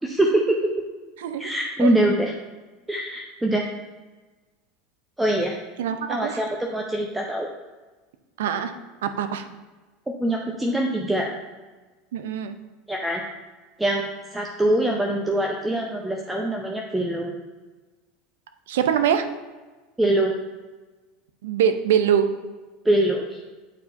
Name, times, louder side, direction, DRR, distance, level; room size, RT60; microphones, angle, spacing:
voice 1, 0.0-0.6 1.4-2.3 2.9-3.7 5.2-5.6 6.1-7.5 10.1-11.3 12.9-13.2 13.8-17.3 20.0-20.3 22.8-23.4, right 1 dB, 10° right, 0 dB, 0.7 m, -23 dB
voice 2, 1.2-1.5 1.8-1.9 5.8-6.4 8.4-8.7 9.0-9.5 12.1-12.6 18.7-19.3 21.4-22.3, right 8 dB, 70° right, 8 dB, 0.5 m, -23 dB
8.2 x 4.5 x 2.6 m, 1.3 s
figure-of-eight pair, 80°, 0 cm